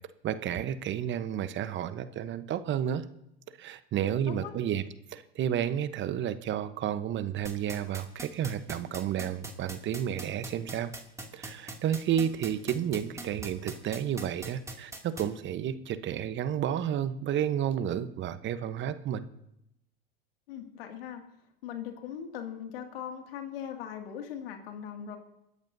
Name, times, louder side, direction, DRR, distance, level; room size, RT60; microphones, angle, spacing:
voice 1, 0.2-3.0 3.6-4.8 5.1-10.9 11.3-19.3, right 10 dB, 40° right, 12 dB, 1.0 m, -31 dB
voice 2, 4.0-4.6 20.5-21.2 21.6-25.2, left 9 dB, 75° left, 4 dB, 2.3 m, -40 dB
sound 1, 7.5-15.2, right 2 dB, 10° right, 2.6 m, -40 dB
27.5 x 13.5 x 2.7 m, 0.82 s
hypercardioid pair, 90°, 29 cm